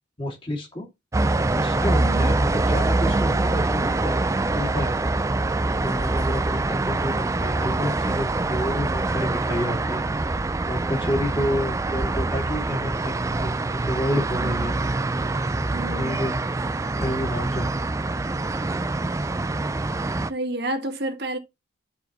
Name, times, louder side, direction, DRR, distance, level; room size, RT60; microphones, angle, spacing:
voice 1, 0.2-0.9 1.5-4.2 4.5-5.0 5.8-10.0 10.7-13.2 13.4-13.5 13.9-14.8 16.0-16.4 17.0-17.7, left 1 dB, 25° left, 2.5 m, -29 dB
sound 1, 1.1-20.3, right 2 dB, 15° right, 0.3 m, -24 dB
voice 2, 2.0-2.3 14.4-14.8 15.7-16.2 20.3-21.4, right 1 dB, 55° right, 1.7 m, -30 dB
11.5 x 4.8 x 3.0 m
head